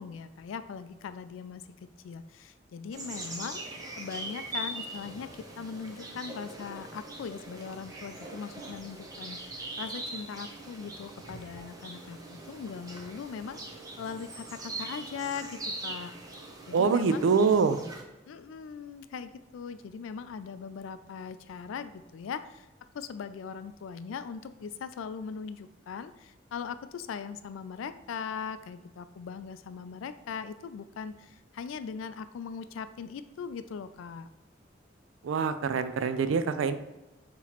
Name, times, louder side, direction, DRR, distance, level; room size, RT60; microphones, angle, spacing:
voice 1, 0.0-1.6 2.0-9.4 9.8-13.6 14.0-16.1 16.7-17.2 18.3-22.7 22.9-34.3, left 6 dB, 85° left, 12 dB, 0.3 m, -40 dB
sound 1, 2.9-18.0, right 2 dB, 20° right, 0.6 m, -41 dB
voice 2, 16.7-17.8 35.2-36.7, right 5 dB, 85° right, 11 dB, 0.4 m, -25 dB
5.7 x 3.0 x 2.9 m, 1.0 s
head